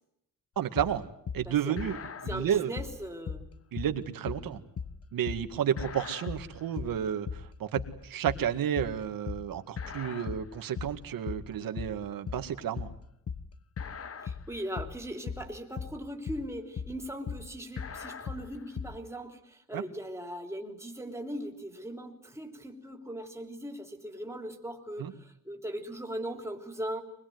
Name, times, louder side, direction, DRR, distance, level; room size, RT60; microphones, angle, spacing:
voice 1, 0.6-1.1 1.3-2.0 2.2-2.7 3.7-4.6 5.1-12.9 19.7-19.8 25.0-25.1, right 9 dB, 75° right, 8 dB, 2.0 m, -31 dB
sound 1, 0.8-19.0, left 6 dB, 45° left, 1.3 m, -39 dB
voice 2, 1.5-1.8 2.3-3.5 14.2-27.0, right 1 dB, 10° right, 4 dB, 3.4 m, -39 dB
25.0 x 21.0 x 9.5 m, 0.75 s
cardioid pair, 135°, 34 cm